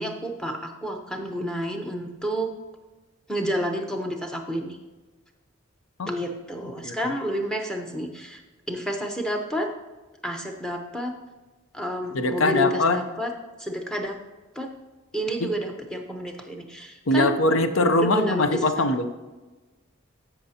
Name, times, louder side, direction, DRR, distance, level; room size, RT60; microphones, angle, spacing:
voice 1, 0.0-2.5 3.3-4.8 6.0-8.4 8.7-9.7 10.2-11.1 11.7-13.3 13.6-14.2 14.5-14.7 15.1-17.3 17.9-19.0, equal, 5° left, 3 dB, 0.8 m, -30 dB
voice 2, 12.1-13.0 15.4-15.5 17.1-19.0, left 2 dB, 75° left, 9 dB, 0.7 m, -22 dB
14.5 x 5.8 x 2.8 m, 1.2 s
head